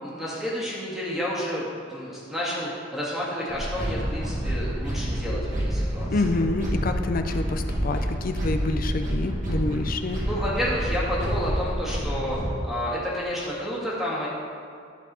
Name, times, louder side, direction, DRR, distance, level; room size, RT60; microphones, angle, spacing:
voice 1, 0.0-6.1 10.3-14.3, equal, ahead, -7 dB, 2.0 m, -30 dB
sound 1, 3.5-12.5, equal, 45° right, 1.7 m, -28 dB
voice 2, 6.1-10.2, left 2 dB, 50° left, 7 dB, 0.5 m, -27 dB
11.5 x 4.6 x 4.2 m, 2.4 s
head